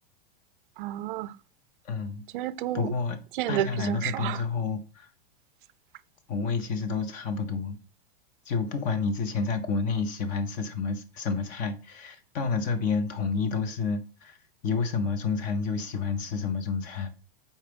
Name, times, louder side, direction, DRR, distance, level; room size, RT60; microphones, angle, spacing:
voice 1, 0.8-1.3 2.3-2.9 3.3-4.4, right 13 dB, 55° right, 0.4 m, -31 dB
voice 2, 1.8-2.2 2.7-3.2 3.5-5.1 6.3-7.8 8.5-14.4 14.6-17.1, left 5 dB, 25° left, 0.7 m, -29 dB
4.7 x 4.2 x 5.1 m
supercardioid pair, 160°, 31 cm